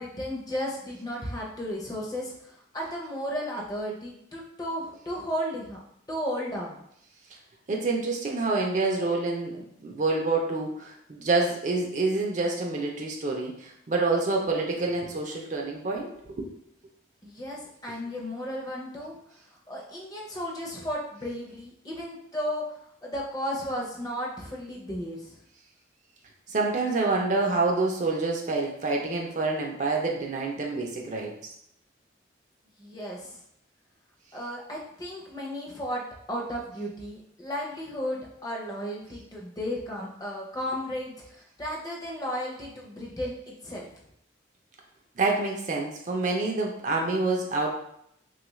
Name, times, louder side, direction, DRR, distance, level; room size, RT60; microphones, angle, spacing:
voice 1, 0.0-5.8 6.1-6.8 17.2-19.2 19.7-22.6 23.0-25.3 32.8-33.4 34.3-36.0 36.3-43.9, equal, 20° left, -3 dB, 0.5 m, -34 dB
voice 2, 7.7-16.5 26.5-31.5 45.2-47.7, right 3 dB, 40° right, 0 dB, 0.4 m, -27 dB
3.4 x 2.3 x 3.0 m, 0.74 s
head